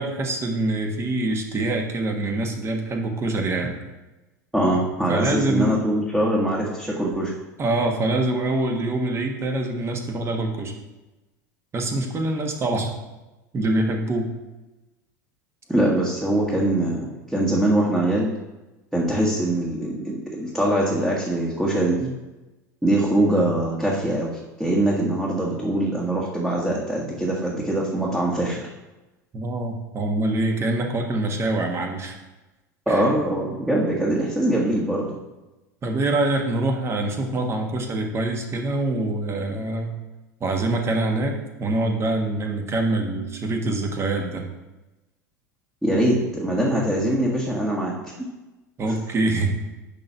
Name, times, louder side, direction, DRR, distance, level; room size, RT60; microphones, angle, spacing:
voice 1, 0.0-3.7 5.1-5.8 7.6-10.7 11.7-12.9 13.5-14.3 29.3-32.1 32.9-33.1 35.8-39.9 40.4-44.4 48.8-49.5, right 2 dB, 25° right, 3 dB, 1.6 m, -25 dB
voice 2, 4.5-7.3 15.7-18.3 18.9-22.1 22.8-28.7 32.9-35.1 45.8-48.2, right 1 dB, 5° right, -4 dB, 1.6 m, -23 dB
10.5 x 3.9 x 5.9 m, 1.1 s
figure-of-eight pair, 75°, 10 cm